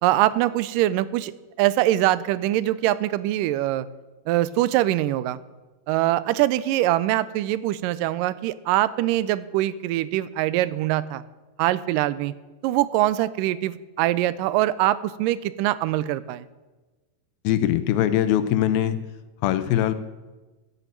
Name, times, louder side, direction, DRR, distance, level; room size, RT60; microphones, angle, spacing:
voice 1, 0.0-1.3 1.6-3.9 4.3-5.4 5.9-11.2 11.6-12.3 12.6-16.4, right 15 dB, 80° right, 16 dB, 2.0 m, -23 dB
voice 2, 17.4-19.0 19.4-19.9, left 11 dB, 85° left, 12 dB, 2.5 m, -21 dB
13.0 x 8.4 x 7.5 m, 1.2 s
omnidirectional pair, 4.1 m